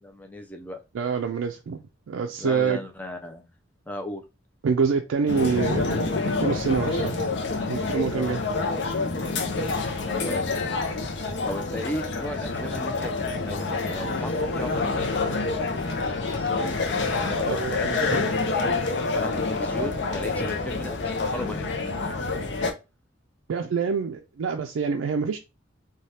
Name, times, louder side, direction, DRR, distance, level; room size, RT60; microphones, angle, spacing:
voice 1, 0.0-0.8 2.4-3.5 3.9-4.2 8.1-8.4 9.9-10.4 11.4-14.8 15.1-15.5 17.2-22.2, left 1 dB, 10° left, 0.4 m, -36 dB
voice 2, 0.9-2.8 4.6-7.1 7.7-8.4 17.4-18.3 23.5-25.4, right 5 dB, 80° right, 0.3 m, -26 dB
sound 1, 5.3-22.7, left 3 dB, 60° left, 0.5 m, -27 dB
2.7 x 2.3 x 3.2 m
head